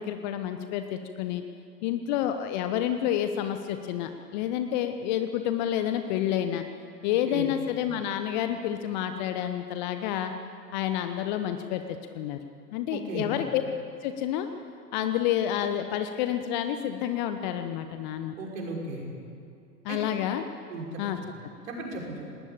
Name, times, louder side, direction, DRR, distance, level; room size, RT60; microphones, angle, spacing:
voice 1, 0.0-1.4 1.8-6.6 7.0-10.3 10.7-11.8 12.1-12.4 12.7-13.6 14.0-14.5 14.9-18.3 19.8-20.4 21.0-21.2, left 10 dB, 25° left, 8 dB, 0.9 m, -29 dB
voice 2, 12.9-13.3 18.4-19.0 19.9-20.0 20.7-21.0 21.6-22.2, right 3 dB, 50° right, -1 dB, 5.9 m, -35 dB
19.5 x 19.0 x 8.8 m, 2.5 s
figure-of-eight pair, 110°, 50 cm